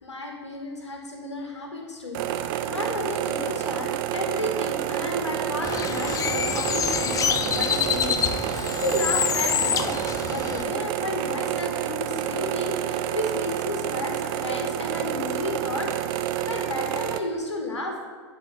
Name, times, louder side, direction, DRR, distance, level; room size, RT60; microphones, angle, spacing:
voice 1, 0.0-2.4 2.7-8.5 8.7-18.0, left 1 dB, 90° left, 1 dB, 2.1 m, -32 dB
sound 1, 2.1-17.2, right 12 dB, 55° right, 0.7 m, -29 dB
Bird, 5.6-10.6, left 8 dB, 25° left, 0.5 m, -26 dB
9.8 x 5.6 x 5.7 m, 1.5 s
hypercardioid pair, 95°, 14 cm